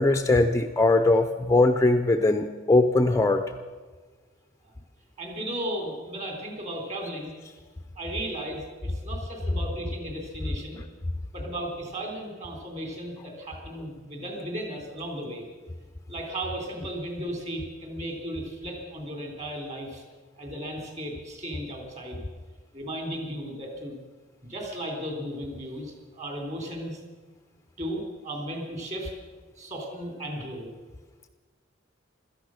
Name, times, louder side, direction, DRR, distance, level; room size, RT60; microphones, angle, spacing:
voice 1, 0.0-3.5, left 2 dB, 15° left, 7 dB, 0.5 m, -21 dB
voice 2, 5.2-7.3 8.0-10.8 11.3-15.5 16.1-20.0 20.4-22.2 22.7-24.0 24.4-27.0 27.8-29.1 29.6-30.7, right 1 dB, 35° right, 2 dB, 3.6 m, -35 dB
16.5 x 13.0 x 6.5 m, 1.4 s
head